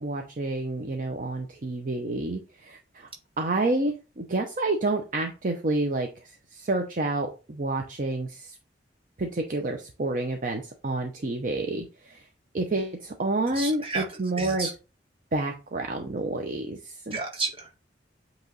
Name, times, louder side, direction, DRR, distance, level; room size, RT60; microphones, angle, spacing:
voice 1, 0.0-3.1 3.4-8.6 9.2-12.2 12.5-14.7 15.3-17.2, right 2 dB, 45° right, 4 dB, 0.6 m, -29 dB
voice 2, 13.5-14.0 14.4-14.7 17.1-17.8, right 3 dB, 30° right, 0 dB, 1.6 m, -31 dB
8.0 x 3.0 x 3.8 m, 0.33 s
head